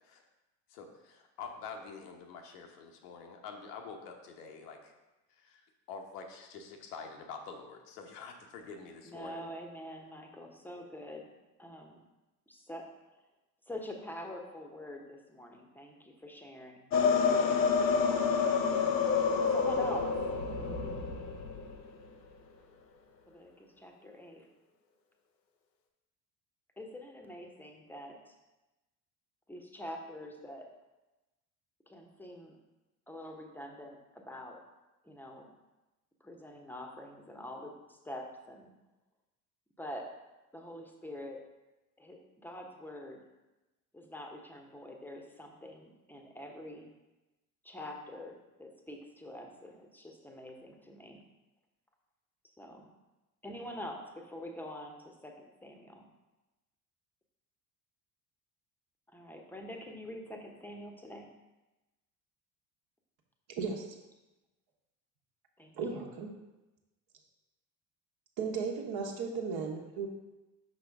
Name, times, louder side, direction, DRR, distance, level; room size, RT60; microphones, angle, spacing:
voice 1, 0.7-4.9 5.4-5.6 5.9-9.5, left 5 dB, 70° left, 3 dB, 1.0 m, -46 dB
voice 2, 9.0-11.3 11.6-12.0 12.5-12.9 13.7-16.9 19.5-20.1 23.3-24.5 26.8-28.3 29.5-30.7 31.9-32.6 33.1-34.6 35.0-35.5 36.2-38.7 39.8-40.1 40.5-41.4 42.0-43.2 43.9-46.9 47.6-51.2 52.6-52.9 53.4-56.1 59.1-61.3 65.6-65.7, left 1 dB, 5° left, 2 dB, 0.9 m, -45 dB
sound 1, 16.9-21.8, left 5 dB, 90° left, 0.6 m, -28 dB
voice 3, 65.7-66.3 68.4-70.1, right 5 dB, 50° right, 1 dB, 1.3 m, -35 dB
5.8 x 5.1 x 3.5 m, 1.0 s
figure-of-eight pair, 60°, 49 cm